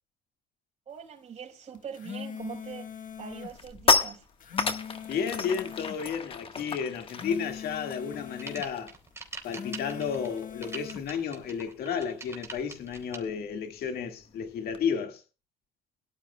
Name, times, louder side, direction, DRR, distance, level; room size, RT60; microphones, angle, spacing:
voice 1, 0.9-4.3, right 7 dB, 40° right, 4.7 m, -42 dB
sound 1, 1.7-3.6 4.2-6.0 6.9-8.7 9.3-11.1, left 8 dB, 50° left, 1.6 m, -41 dB
sound 2, 2.5-2.7 3.1-9.1 9.3-9.6 9.8-14.9, left 4 dB, 30° left, 1.4 m, -33 dB
voice 2, 5.1-9.0 9.4-15.2, left 7 dB, 65° left, 1.9 m, -32 dB
sound 3, 8.1-13.2, right 3 dB, 15° right, 3.6 m, -43 dB
22.5 x 12.0 x 2.3 m
cardioid pair, 110°, 17 cm